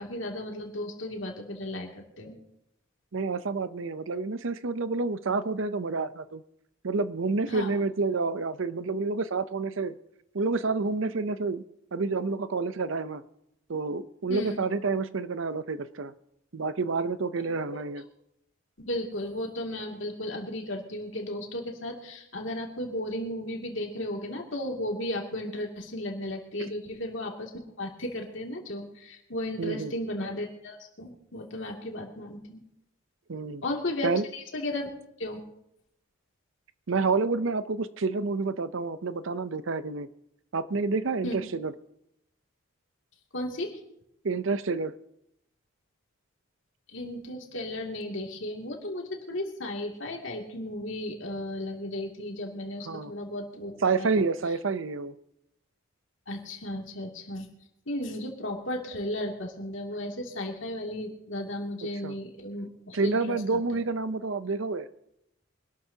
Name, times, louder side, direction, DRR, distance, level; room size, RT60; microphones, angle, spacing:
voice 1, 0.0-2.4 7.5-7.7 14.3-14.6 18.8-32.6 33.6-34.9 35.2-35.4 41.2-41.4 43.3-43.8 46.9-53.9 54.2-54.3 56.3-57.5 57.9-63.8, left 1 dB, 65° left, 1 dB, 2.6 m, -35 dB
voice 2, 3.1-6.4 6.8-10.0 10.3-11.6 11.9-13.2 13.7-16.1 16.5-18.0 26.6-26.7 29.6-29.9 33.3-33.6 34.0-34.2 36.9-40.1 40.5-41.7 44.2-44.9 52.9-53.1 53.8-55.1 62.0-62.1 62.9-64.9, right 4 dB, 70° right, 13 dB, 0.7 m, -29 dB
24.5 x 12.5 x 2.9 m, 0.80 s
head